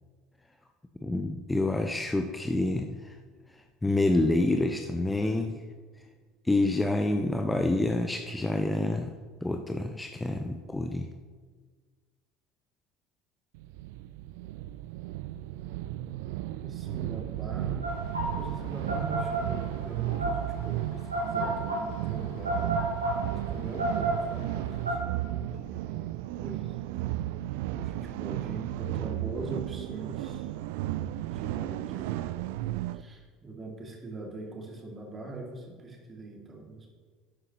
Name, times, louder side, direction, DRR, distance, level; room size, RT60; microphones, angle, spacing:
voice 1, 1.0-3.2 3.8-5.6 6.5-9.1 9.4-11.1, left 2 dB, 10° left, 5 dB, 0.6 m, -27 dB
sound 1, 13.5-33.0, right 14 dB, 60° right, 0.3 m, -34 dB
voice 2, 16.6-17.9 18.4-22.8 23.5-25.2 25.5-26.1 26.4-27.0 27.7-30.5 31.2-32.4 32.9-36.9, right 3 dB, 25° right, 0 dB, 2.5 m, -42 dB
sound 2, 17.8-24.9, right 1 dB, 85° right, 2.2 m, -31 dB
12.0 x 9.4 x 3.1 m, 1.5 s
figure-of-eight pair, 65°, 0 cm